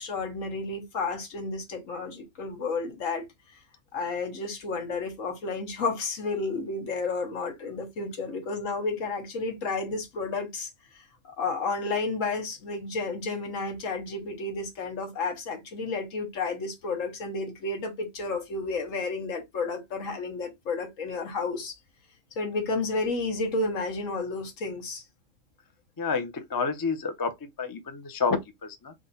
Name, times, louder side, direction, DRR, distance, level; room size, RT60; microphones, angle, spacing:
voice 1, 0.0-3.2 3.9-10.7 11.4-21.8 22.4-25.0, left 3 dB, 80° left, 1.4 m, -31 dB
voice 2, 26.0-28.9, left 4 dB, 30° left, 0.4 m, -29 dB
3.7 x 2.3 x 4.0 m
omnidirectional pair, 1.3 m